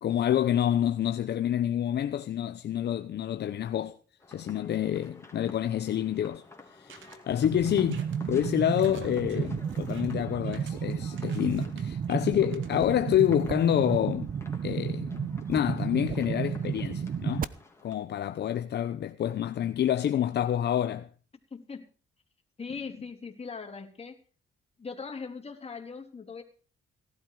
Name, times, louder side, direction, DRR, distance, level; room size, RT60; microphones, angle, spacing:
voice 1, 0.0-4.0 4.3-6.4 6.7-14.3 14.6-17.5 17.8-21.1, left 10 dB, 60° left, 0.8 m, -28 dB
sound 1, 4.2-17.9, left 3 dB, 15° left, 3.4 m, -52 dB
sound 2, 6.9-13.8, right 7 dB, 75° right, 2.4 m, -54 dB
sound 3, 7.4-17.4, right 7 dB, 45° right, 0.9 m, -32 dB
voice 2, 21.5-21.8 22.6-24.2 24.8-26.4, left 5 dB, 30° left, 3.4 m, -40 dB
17.5 x 12.5 x 4.8 m
cardioid pair, 90°, 20 cm